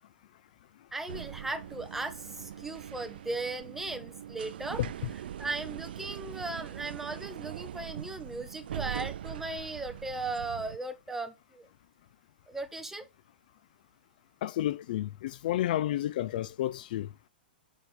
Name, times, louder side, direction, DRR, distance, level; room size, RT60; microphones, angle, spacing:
voice 1, 0.9-4.8 5.1-11.7 12.5-13.1, right 2 dB, 5° right, 1.2 m, -37 dB
sound 1, 1.1-10.8, right 11 dB, 70° right, 0.5 m, -42 dB
voice 2, 14.4-17.3, left 13 dB, 55° left, 0.6 m, -31 dB
8.1 x 6.3 x 5.6 m
hypercardioid pair, 140°, 5 cm